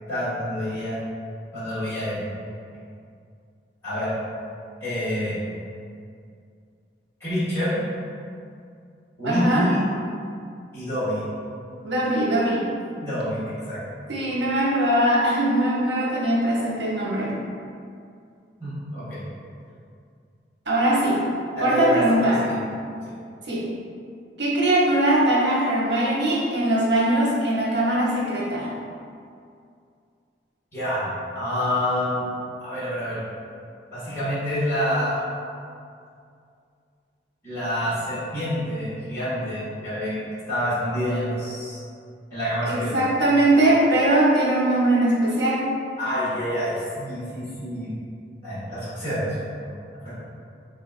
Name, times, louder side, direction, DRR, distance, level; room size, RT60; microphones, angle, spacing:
voice 1, 0.1-1.0 1.5-2.2 3.8-4.1 4.8-5.4 7.2-7.8 9.2-9.9 10.7-11.2 13.0-13.8 18.6-19.2 21.5-22.6 30.7-32.2 32.6-33.2 33.9-35.3 37.4-40.2 40.5-41.8 42.3-43.0 46.0-47.9 48.4-49.3 50.0-50.1, equal, 15° left, -14 dB, 1.2 m, -27 dB
voice 2, 9.2-9.7 11.8-12.7 14.1-17.3 20.7-21.2 21.6-22.4 23.5-23.6 24.4-28.7 42.7-45.6, right 1 dB, 85° right, -5 dB, 0.8 m, -21 dB
3.8 x 2.4 x 2.3 m, 2.3 s
head